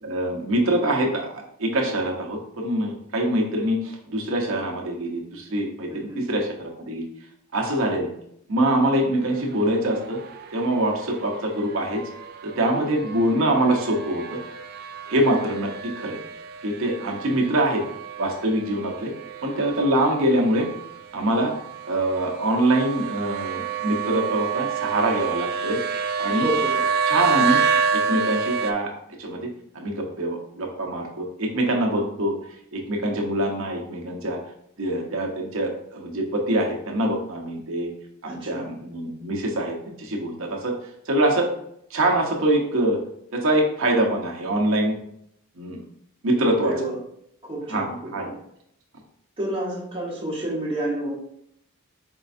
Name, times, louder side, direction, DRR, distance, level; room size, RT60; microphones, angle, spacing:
voice 1, 0.0-7.0 7.5-8.1 8.5-10.2 10.5-12.0 12.4-14.4 15.1-15.7 16.0-16.2 16.6-17.8 18.2-19.1 19.4-20.7 21.1-21.5 21.8-25.8 26.2-26.5 27.1-27.6 27.9-28.9 29.2-29.4 29.7-32.3 32.7-34.4 34.8-37.9 38.2-40.7 41.1-41.5 41.9-43.0 43.3-45.0 45.6-45.8 46.2-46.7 47.7-48.3, right 1 dB, 60° right, 0 dB, 0.8 m, -24 dB
voice 2, 5.9-6.2 12.7-13.0 17.3-17.6 26.4-26.7 33.0-33.3 38.2-38.7 46.6-47.0 47.5-47.9 49.4-51.1, right 1 dB, 25° right, -6 dB, 1.2 m, -30 dB
sound 1, 9.1-28.7, right 6 dB, 45° right, 0.3 m, -29 dB
4.5 x 3.2 x 2.6 m, 0.73 s
head